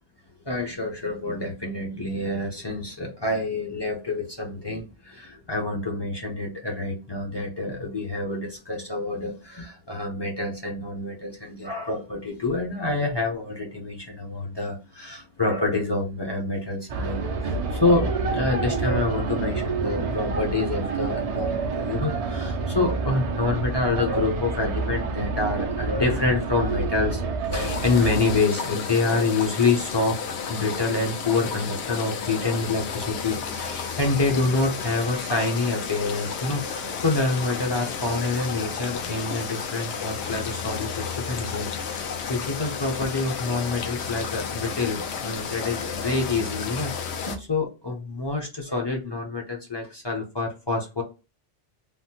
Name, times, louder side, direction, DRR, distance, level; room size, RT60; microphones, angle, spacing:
voice 1, 0.5-27.2 27.5-30.2 30.5-51.0, left 3 dB, 30° left, -1 dB, 0.5 m, -27 dB
sound 1, 16.9-28.4, right 4 dB, 60° right, 0.3 m, -28 dB
sound 2, 27.5-47.4, left 6 dB, 70° left, 0.8 m, -32 dB
3.4 x 2.0 x 2.8 m, 0.30 s
omnidirectional pair, 1.2 m